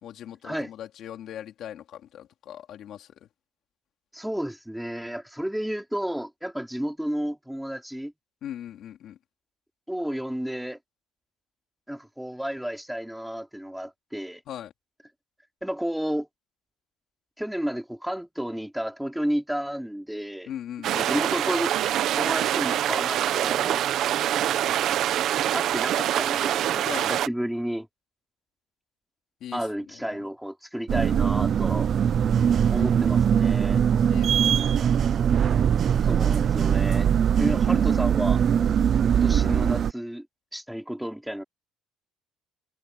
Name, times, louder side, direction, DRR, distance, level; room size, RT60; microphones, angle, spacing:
voice 1, 0.0-3.1 8.4-9.2 14.5-14.7 20.5-21.0 26.8-27.1 29.4-29.7 30.2-30.3 34.1-34.9 37.0-37.2, left 10 dB, 45° left, 3.0 m, -40 dB
voice 2, 4.1-8.1 9.9-10.8 11.9-14.4 15.6-16.3 17.4-20.5 20.9-21.7 22.2-23.8 25.5-27.9 29.5-31.9 32.7-33.8 36.0-37.1 37.4-38.4 39.1-40.3 40.5-41.4, equal, ahead, 3.2 m, -31 dB
sound 1, 20.8-27.3, right 11 dB, 50° right, 1.3 m, -25 dB
sound 2, 30.9-39.9, right 8 dB, 35° right, 0.4 m, -21 dB
cardioid pair, 175°, 0 cm